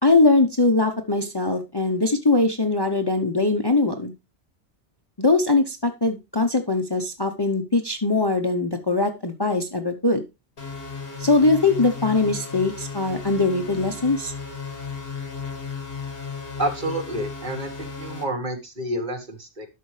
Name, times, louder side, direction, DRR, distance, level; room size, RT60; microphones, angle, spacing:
voice 1, 0.0-4.1 5.2-10.2 11.2-14.3, left 3 dB, 25° left, 6 dB, 0.8 m, -21 dB
sound 1, 10.6-18.2, left 5 dB, 60° left, 2.3 m, -35 dB
voice 2, 16.6-19.7, right 1 dB, 45° right, 5 dB, 1.7 m, -29 dB
11.0 x 6.6 x 3.3 m, 0.25 s
omnidirectional pair, 1.1 m